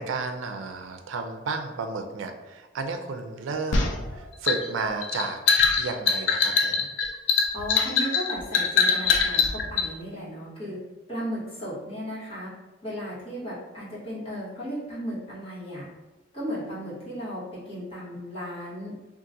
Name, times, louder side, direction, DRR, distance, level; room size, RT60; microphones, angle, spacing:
voice 1, 0.0-5.4 5.8-6.9, right 4 dB, 90° right, 6 dB, 0.4 m, -32 dB
sound 1, 3.7-9.9, left 5 dB, 75° left, 0.5 m, -23 dB
voice 2, 7.5-10.8 11.1-12.5 12.8-15.8 16.3-18.9, equal, 30° left, -10 dB, 1.4 m, -35 dB
3.7 x 2.5 x 2.6 m, 1.2 s
head